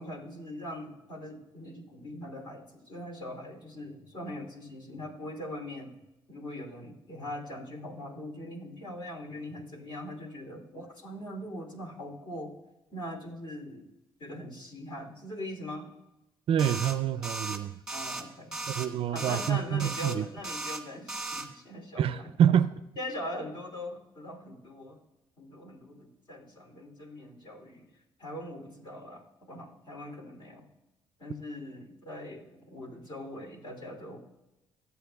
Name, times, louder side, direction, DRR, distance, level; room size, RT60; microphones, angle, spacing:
voice 1, 0.0-5.9 6.3-12.5 12.9-13.8 14.2-15.9 17.9-18.6 19.1-22.3 23.0-25.0 25.4-27.9 28.2-30.7 31.2-34.2, left 1 dB, 50° left, 2 dB, 2.9 m, -41 dB
voice 2, 16.5-17.7 18.7-20.3 22.0-22.7, right 9 dB, 60° right, 14 dB, 0.4 m, -26 dB
sound 1, 16.6-17.0 17.2-17.6 17.9-18.2 18.5-18.9 19.2-19.5 19.8-20.2 20.4-20.8 21.1-21.5, right 2 dB, 5° right, 1.4 m, -36 dB
25.0 x 8.4 x 2.3 m, 0.97 s
supercardioid pair, 70°, 11 cm